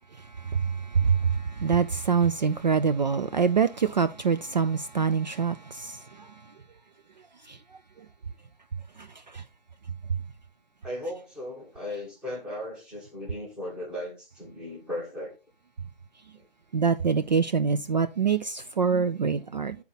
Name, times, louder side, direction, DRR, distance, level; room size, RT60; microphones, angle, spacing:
voice 1, 0.2-6.3 7.5-7.6 9.0-9.4 16.7-19.8, right 6 dB, 50° right, 0.4 m, -25 dB
voice 2, 10.8-15.3 16.3-16.5, left 1 dB, 5° right, 1.0 m, -37 dB
9.5 x 4.2 x 4.0 m
figure-of-eight pair, 155°, 30 cm